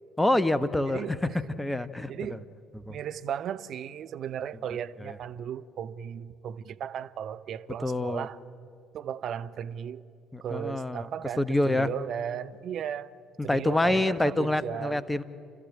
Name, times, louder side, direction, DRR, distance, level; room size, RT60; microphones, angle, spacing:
voice 1, 0.2-1.2 1.6-2.4 2.9-3.0 5.0-5.1 7.8-8.3 10.3-11.1 11.4-11.9 13.4-15.2, left 1 dB, 10° left, 1.0 m, -26 dB
voice 2, 0.8-1.4 2.1-2.5 2.9-8.4 8.9-10.0 10.4-13.1 13.4-15.0, right 9 dB, 50° right, 0.7 m, -36 dB
30.0 x 13.0 x 8.9 m
figure-of-eight pair, 50°, 0 cm